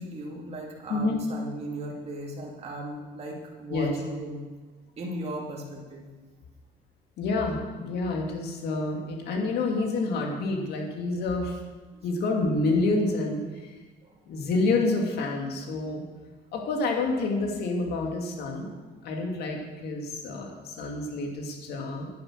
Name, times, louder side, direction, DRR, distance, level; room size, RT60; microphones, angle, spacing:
voice 1, 0.0-4.4 5.0-6.1 11.9-12.1 14.0-14.1 18.0-18.1 18.7-18.8, right 1 dB, 35° right, -2 dB, 2.5 m, -37 dB
voice 2, 7.2-11.6 12.0-13.7 14.3-16.0 16.5-18.7 19.0-22.1, left 3 dB, 75° left, 1 dB, 2.5 m, -28 dB
10.5 x 9.7 x 6.5 m, 1.3 s
cardioid pair, 110°, 17 cm